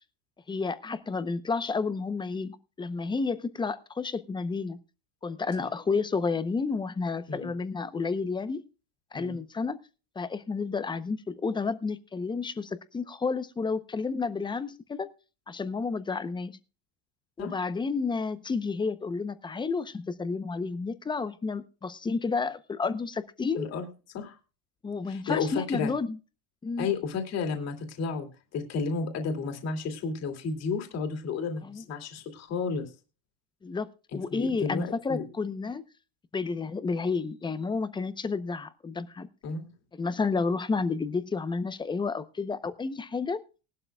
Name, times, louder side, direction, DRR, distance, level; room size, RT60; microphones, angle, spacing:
voice 1, 0.5-4.8 5.2-8.6 9.1-9.8 10.2-15.1 15.5-16.6 17.4-23.7 24.8-26.2 26.6-26.9 31.6-31.8 33.6-35.8 36.3-39.3 39.9-43.4, left 4 dB, 10° left, 13 dB, 0.6 m, -31 dB
voice 2, 23.5-23.9 24.1-24.3 25.1-25.9 26.8-28.3 28.5-32.9 34.1-35.3 39.4-39.7, left 5 dB, 40° left, 5 dB, 2.6 m, -32 dB
19.0 x 12.0 x 2.3 m, 0.34 s
cardioid pair, 155°, 41 cm